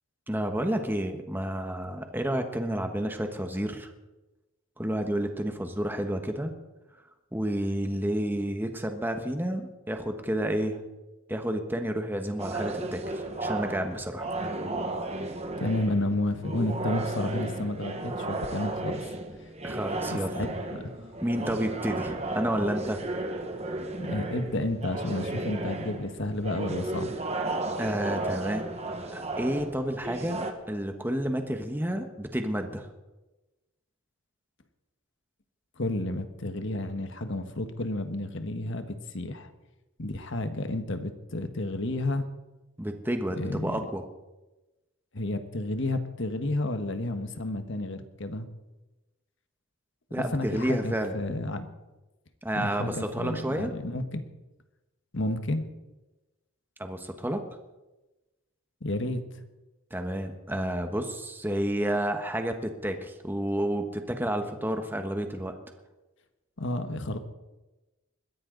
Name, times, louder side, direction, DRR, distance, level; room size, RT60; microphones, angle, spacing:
voice 1, 0.3-3.9 4.8-6.5 7.3-10.8 11.3-14.3 19.6-20.3 21.2-23.0 27.8-28.6 29.1-32.9 42.8-44.0 50.1-51.1 52.4-53.7 56.8-57.4 59.9-65.6, right 1 dB, 10° right, 6 dB, 1.3 m, -30 dB
sound 1, 12.4-30.5, right 2 dB, 30° right, 1.4 m, -34 dB
voice 2, 15.6-19.0 19.4-19.5 20.1-20.9 24.0-27.1 35.8-39.5 40.0-42.3 43.4-43.8 45.1-48.5 50.2-51.7 52.5-54.2 55.1-55.6 58.8-59.2 66.6-67.2, left 1 dB, 60° left, 8 dB, 1.5 m, -31 dB
21.5 x 15.0 x 4.0 m, 1.1 s
head